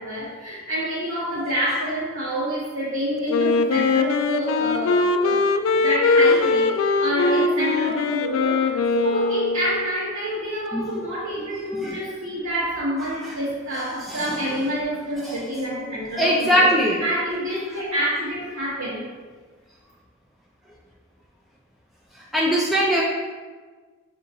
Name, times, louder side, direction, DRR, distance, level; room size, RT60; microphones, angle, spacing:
voice 1, 0.0-5.4 5.8-16.7 17.0-19.1, right 1 dB, 75° right, -11 dB, 1.1 m, -27 dB
Wind instrument woodwind instrument, 3.3-10.0, left 3 dB, 85° left, 0.3 m, -21 dB
voice 2, 14.1-14.7 15.2-15.4 16.2-17.0 22.3-23.0, equal, ahead, -5 dB, 0.4 m, -21 dB
6.3 x 2.8 x 2.6 m, 1.4 s
head